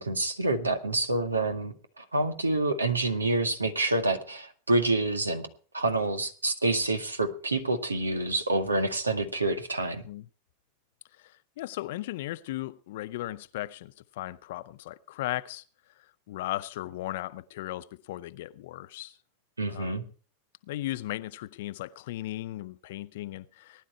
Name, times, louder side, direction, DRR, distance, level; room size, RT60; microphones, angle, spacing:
voice 1, 0.0-5.5 5.7-10.0 19.6-20.0, right 2 dB, 80° right, 2.0 m, -27 dB
voice 2, 11.2-15.6 16.3-19.2 19.7-20.0 20.7-23.9, left 16 dB, 55° left, 0.7 m, -36 dB
19.5 x 11.5 x 4.6 m
figure-of-eight pair, 90°, 0 cm